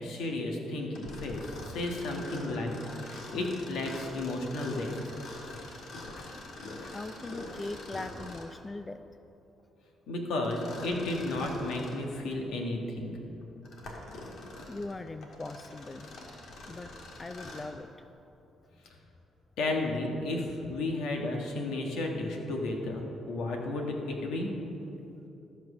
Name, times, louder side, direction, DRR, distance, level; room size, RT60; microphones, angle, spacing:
voice 1, 0.0-4.9 10.1-13.2 19.6-24.5, left 2 dB, 85° left, 1 dB, 1.5 m, -33 dB
Mechanisms, 0.9-8.6 10.4-12.0 12.6-12.7 13.4-17.8, left 2 dB, 70° left, 1.8 m, -44 dB
voice 2, 6.9-9.0 14.7-16.1 16.7-16.9 17.2-17.9, left 2 dB, 25° left, 9 dB, 0.4 m, -40 dB
13.5 x 6.1 x 6.1 m, 2.9 s
cardioid pair, 90°, 0 cm